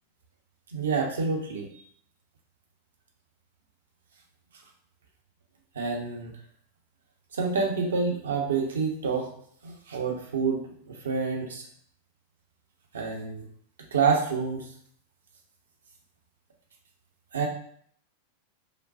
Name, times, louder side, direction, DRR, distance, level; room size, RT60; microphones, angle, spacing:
voice 1, 0.7-1.7 5.7-6.3 7.3-9.3 9.6-11.6 12.9-13.5 13.9-14.7 17.3-17.5, right 5 dB, 65° right, 0 dB, 0.8 m, -28 dB
5.1 x 2.3 x 2.6 m, 0.62 s
figure-of-eight pair, 90°, 0 cm